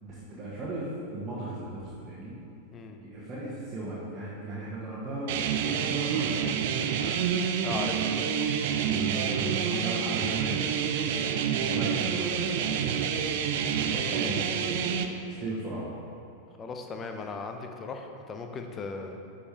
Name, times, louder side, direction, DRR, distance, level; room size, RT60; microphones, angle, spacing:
voice 1, 0.0-2.4 3.0-7.2 8.9-10.6 10.9-12.4 12.7-13.5 13.7-14.8 15.4-15.9, right 2 dB, 25° right, -8 dB, 1.5 m, -37 dB
sound 1, 5.3-15.1, right 7 dB, 50° right, 0.5 m, -28 dB
voice 2, 7.6-8.3 16.6-19.2, left 4 dB, 25° left, 4 dB, 0.7 m, -37 dB
11.0 x 5.1 x 3.5 m, 2.8 s
figure-of-eight pair, 90°, 0 cm